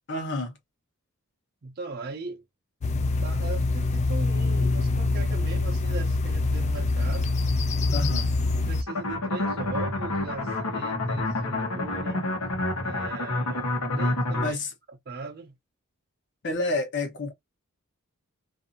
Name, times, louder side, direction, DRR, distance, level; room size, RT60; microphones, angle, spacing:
voice 1, 0.1-0.5 7.9-8.3 14.4-14.7 16.4-17.3, left 2 dB, 55° left, 0.9 m, -29 dB
voice 2, 1.6-2.4 3.2-7.3 8.7-12.3 12.8-14.6 15.1-15.5, right 3 dB, 45° right, 0.6 m, -39 dB
sound 1, 2.8-8.8, left 3 dB, 30° left, 0.3 m, -25 dB
sound 2, 8.9-14.5, left 2 dB, 90° left, 1.0 m, -28 dB
2.6 x 2.6 x 2.5 m
head